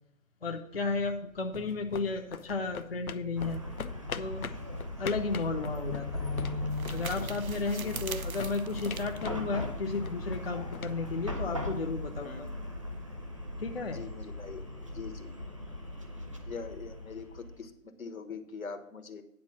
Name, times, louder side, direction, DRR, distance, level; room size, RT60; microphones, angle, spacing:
voice 1, 0.4-3.6 4.2-4.5 5.0-6.3 6.9-12.5 13.6-14.0, left 3 dB, 45° left, 4 dB, 0.6 m, -33 dB
sound 1, 1.1-11.9, left 7 dB, 90° left, 0.7 m, -44 dB
Chatter / Car passing by / Traffic noise roadway noise, 3.4-17.6, left 1 dB, 25° right, 0.7 m, -38 dB
sound 2, 5.2-10.4, right 6 dB, 80° right, 0.8 m, -45 dB
voice 2, 12.2-12.5 13.9-14.6 14.9-15.3 16.4-19.2, left 5 dB, 75° left, 8 dB, 1.4 m, -43 dB
9.5 x 4.3 x 7.4 m, 0.79 s
figure-of-eight pair, 165°, 42 cm